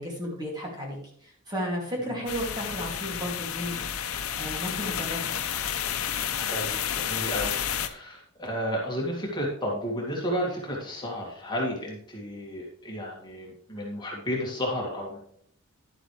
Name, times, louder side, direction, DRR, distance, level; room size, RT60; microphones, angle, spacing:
voice 1, 0.0-3.8 4.3-5.3, equal, 20° right, -2 dB, 2.5 m, -33 dB
sound 1, 2.3-7.9, left 9 dB, 80° left, 0.7 m, -31 dB
voice 2, 6.3-15.2, equal, 20° left, -3 dB, 2.0 m, -32 dB
11.0 x 7.8 x 3.2 m, 0.63 s
head